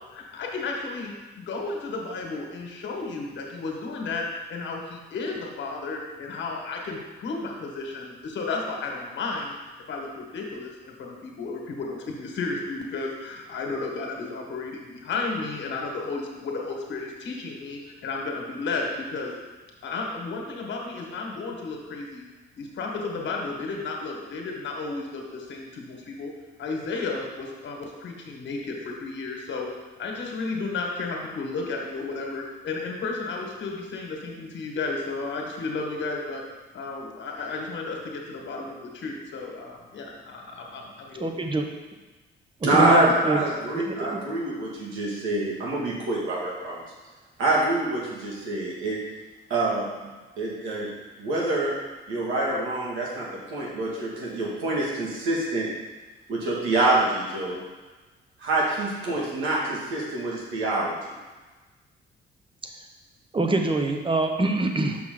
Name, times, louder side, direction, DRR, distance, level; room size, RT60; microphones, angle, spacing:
voice 1, 0.1-9.5 9.9-10.7 11.0-19.3 19.8-22.2 22.6-26.3 26.6-29.7 30.0-36.4 36.7-41.3, left 3 dB, 70° left, 0 dB, 1.5 m, -33 dB
voice 2, 41.2-41.6 42.7-43.4 43.7-44.2 62.6-62.7 63.3-65.0, right 2 dB, 25° right, 4 dB, 0.9 m, -25 dB
voice 3, 42.6-46.8 47.4-49.0 49.5-49.9 50.4-50.9 51.2-51.7 52.1-55.7 56.3-57.6 58.4-60.9, right 2 dB, 85° right, -5 dB, 2.1 m, -25 dB
6.2 x 5.9 x 3.9 m, 1.2 s
cardioid pair, 90°, 20 cm